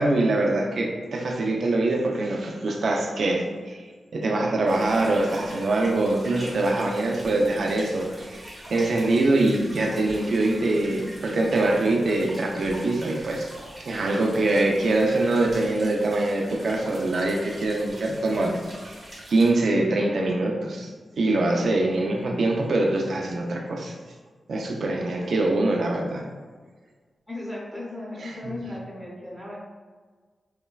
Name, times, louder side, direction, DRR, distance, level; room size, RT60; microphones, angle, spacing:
voice 1, 0.0-8.4 8.7-13.5 13.8-19.0 19.3-20.9 21.2-23.9 24.5-26.2 28.2-28.5, right 2 dB, 60° right, 0 dB, 0.3 m, -24 dB
sound 1, 4.7-19.5, right 1 dB, 20° right, 0.6 m, -43 dB
voice 2, 27.3-29.6, left 1 dB, 10° left, -8 dB, 0.7 m, -36 dB
3.1 x 2.1 x 2.3 m, 1.5 s
wide cardioid pair, 160°, 0 cm